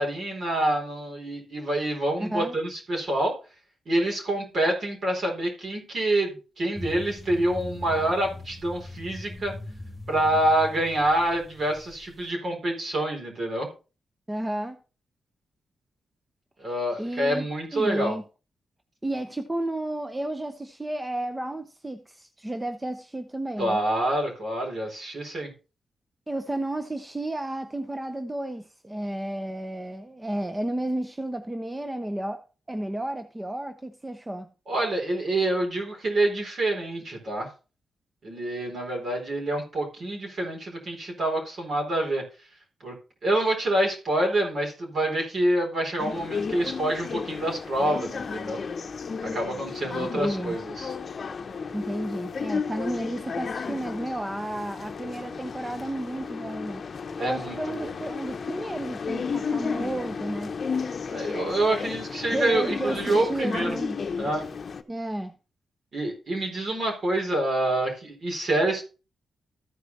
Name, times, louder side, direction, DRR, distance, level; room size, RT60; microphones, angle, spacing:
voice 1, 0.0-3.4 3.9-9.5 10.1-13.7 16.6-18.2 23.6-25.5 34.7-37.5 38.2-42.2 42.8-42.9 43.2-48.6 49.2-50.9 57.2-57.9 61.1-63.8 64.2-64.4 65.9-68.8, right 1 dB, 55° right, 4.4 m, -27 dB
voice 2, 2.2-2.6 14.3-14.8 16.6-17.5 17.7-18.2 19.0-23.8 26.3-34.5 49.8-50.6 51.7-56.8 57.2-60.5 62.3-64.0 64.9-65.4, right 1 dB, 15° right, 0.7 m, -32 dB
sound 1, 6.8-12.3, left 1 dB, 5° left, 2.5 m, -40 dB
sound 2, 46.0-64.8, left 5 dB, 50° left, 0.8 m, -33 dB
14.0 x 4.9 x 4.1 m
cardioid pair, 100°, 0 cm